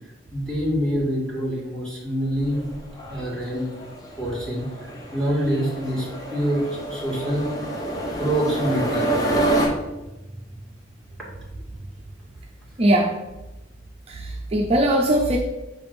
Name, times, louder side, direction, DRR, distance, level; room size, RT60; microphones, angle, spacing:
voice 1, 0.3-2.6 3.1-3.6 4.2-6.6 6.9-7.6 8.2-9.1, equal, 5° left, -6 dB, 1.9 m, -25 dB
sound 1, 2.4-9.7, right 1 dB, 20° left, 1.0 m, -27 dB
voice 2, 12.8-13.1 14.1-15.4, right 1 dB, 35° right, 0 dB, 0.5 m, -20 dB
5.7 x 3.5 x 5.2 m, 1.0 s
head